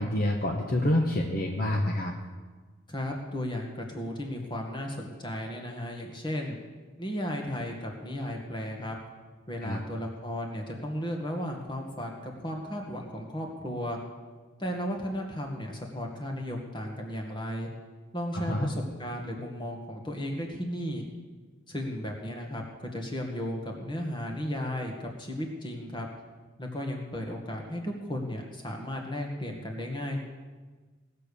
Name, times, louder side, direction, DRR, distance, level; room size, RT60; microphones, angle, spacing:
voice 1, 0.0-2.1 9.6-9.8 18.3-18.7, left 1 dB, 45° left, 1 dB, 1.0 m, -27 dB
voice 2, 2.9-6.6 7.0-9.0 9.5-14.0 14.6-17.7 18.1-21.1 21.7-26.1 26.6-30.2, equal, 20° left, 1 dB, 1.7 m, -35 dB
18.0 x 6.8 x 6.9 m, 1.4 s
head